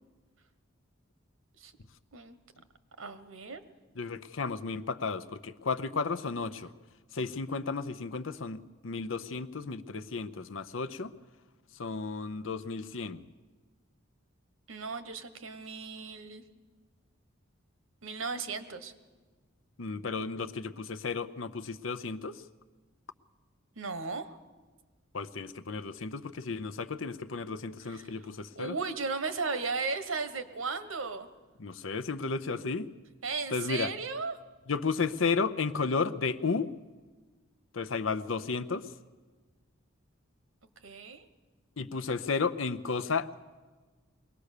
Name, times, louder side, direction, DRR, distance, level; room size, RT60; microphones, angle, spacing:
voice 1, 3.0-3.6 14.7-16.4 18.0-18.9 23.7-24.4 27.8-28.3 28.6-31.3 33.2-34.4 40.8-41.3, right 4 dB, 85° right, 10 dB, 1.3 m, -36 dB
voice 2, 4.0-6.7 7.1-11.1 11.8-13.2 19.8-22.4 25.1-28.8 31.6-32.9 33.5-33.9 34.7-36.7 37.7-38.9 41.8-43.4, left 4 dB, 70° left, 12 dB, 0.7 m, -33 dB
22.5 x 18.0 x 6.7 m, 1.4 s
head